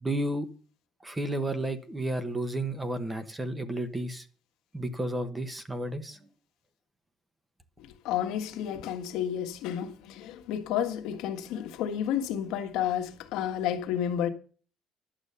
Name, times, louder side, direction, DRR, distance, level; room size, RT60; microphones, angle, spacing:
voice 1, 0.0-0.5 1.0-4.2 4.7-6.2, right 1 dB, 10° right, 1.0 m, -32 dB
voice 2, 8.0-14.3, left 9 dB, 80° left, 1.6 m, -31 dB
11.5 x 8.2 x 6.8 m
cardioid pair, 170°, 0 cm